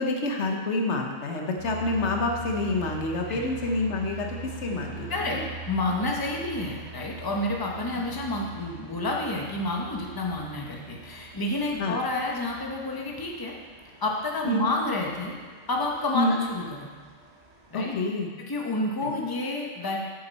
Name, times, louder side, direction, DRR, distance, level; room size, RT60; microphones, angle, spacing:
voice 1, 0.0-5.5 11.8-12.0 14.4-14.7 16.1-16.4 17.7-18.3 19.0-19.1, left 2 dB, 80° left, 2 dB, 1.2 m, -28 dB
sound 1, 1.6-18.0, right 3 dB, 75° right, 1.4 m, -43 dB
voice 2, 5.1-5.4 5.7-13.5 14.0-15.4 15.7-16.9 17.7-18.0 18.4-20.0, left 2 dB, 20° left, -1 dB, 0.9 m, -29 dB
8.0 x 7.3 x 4.1 m, 1.5 s
omnidirectional pair, 1.1 m